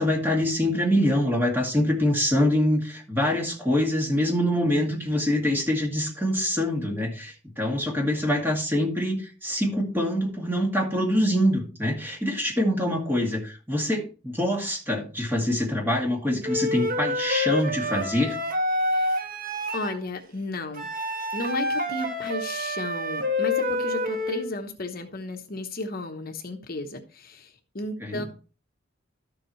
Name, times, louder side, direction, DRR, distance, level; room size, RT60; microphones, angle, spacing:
voice 1, 0.0-18.4 28.0-28.3, left 1 dB, 10° right, 0 dB, 2.3 m, -25 dB
Wind instrument woodwind instrument, 16.4-20.0 20.7-24.5, left 1 dB, 50° right, 1.5 m, -27 dB
voice 2, 19.7-20.9 21.3-28.2, left 2 dB, 50° left, 5 dB, 1.1 m, -34 dB
12.5 x 7.5 x 3.2 m, 0.37 s
head